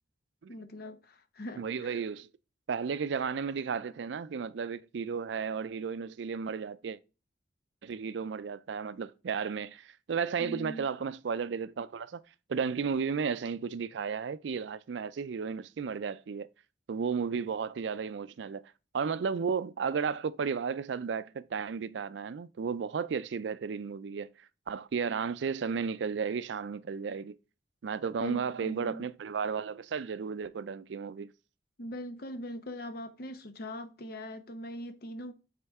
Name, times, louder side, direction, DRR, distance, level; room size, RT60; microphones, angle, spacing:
voice 1, 0.5-2.0 10.4-10.9 28.2-29.1 31.8-35.3, equal, 60° left, 0.9 m, -41 dB
voice 2, 1.6-2.3 2.7-7.0 7.8-12.2 12.5-16.5 16.9-18.6 18.9-24.3 24.7-27.4 27.8-31.3, right 6 dB, 75° right, 0.4 m, -33 dB
8.5 x 4.4 x 3.5 m
head